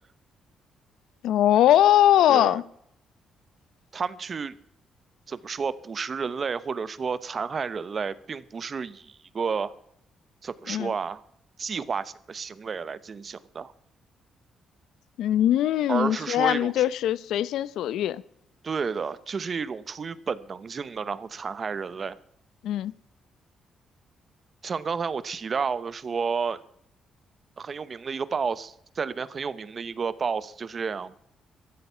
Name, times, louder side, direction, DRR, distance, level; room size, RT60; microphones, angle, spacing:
voice 1, 1.2-2.6 10.7-10.9 15.2-18.2 22.6-22.9, left 12 dB, 85° left, 0.6 m, -21 dB
voice 2, 2.3-2.6 3.9-4.5 5.3-9.7 10.4-11.2 11.6-13.7 15.9-16.8 18.6-22.2 24.6-26.6 27.6-31.1, right 5 dB, 35° right, 0.8 m, -31 dB
15.0 x 13.5 x 5.6 m
cardioid pair, 135°, 0 cm